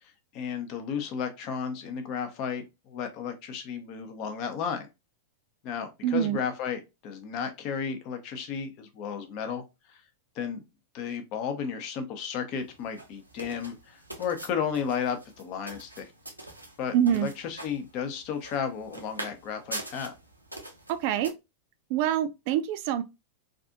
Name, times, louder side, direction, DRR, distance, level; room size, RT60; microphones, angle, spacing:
voice 1, 0.3-4.9 5.6-9.6 9.9-10.0 10.4-10.6 10.9-16.1 16.8-20.2, left 7 dB, 45° left, 0.7 m, -33 dB
voice 2, 6.0-6.4 16.9-17.3 20.9-21.3 21.9-23.0, right 10 dB, 50° right, 0.4 m, -25 dB
sound 1, 12.5-21.3, right 1 dB, 90° right, 0.7 m, -44 dB
3.4 x 2.5 x 2.5 m
figure-of-eight pair, 90°, 0 cm